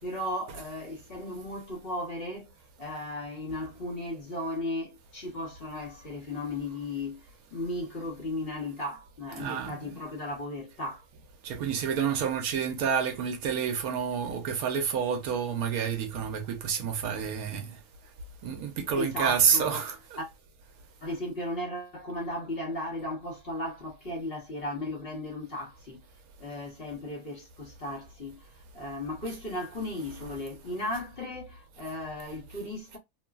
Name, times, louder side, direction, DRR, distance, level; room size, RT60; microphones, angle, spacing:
voice 1, 0.0-11.0 18.9-19.8 20.2-20.3 21.0-26.0 26.4-33.0, left 1 dB, 40° left, 1.2 m, -36 dB
voice 2, 9.4-9.8 11.4-17.8 18.4-20.2, right 7 dB, 70° right, 1.0 m, -29 dB
3.1 x 2.2 x 2.3 m
omnidirectional pair, 1.7 m